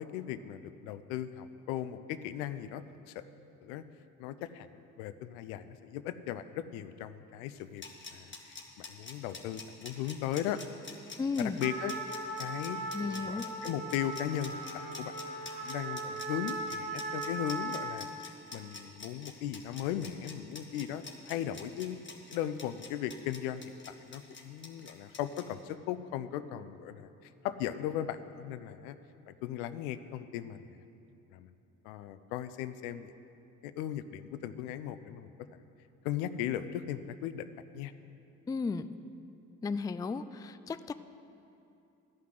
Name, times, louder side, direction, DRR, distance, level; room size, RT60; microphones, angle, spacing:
voice 1, 0.0-3.2 3.6-3.8 4.2-7.8 8.1-10.6 11.4-11.9 12.4-14.6 15.0-15.1 15.4-18.1 18.5-22.0 22.3-29.0 29.3-30.8 31.3-31.5 31.8-33.1 33.6-35.3 36.0-37.9, left 11 dB, 80° left, 12 dB, 0.6 m, -37 dB
sound 1, 7.6-25.4, left 4 dB, 25° left, 2.0 m, -46 dB
voice 2, 11.2-11.6 12.9-13.4 38.5-38.9 39.6-40.9, left 4 dB, 10° left, 12 dB, 0.3 m, -34 dB
Trumpet, 11.6-18.2, right 2 dB, 50° right, 3.3 m, -39 dB
13.0 x 5.8 x 9.4 m, 2.7 s
hypercardioid pair, 45°, 42 cm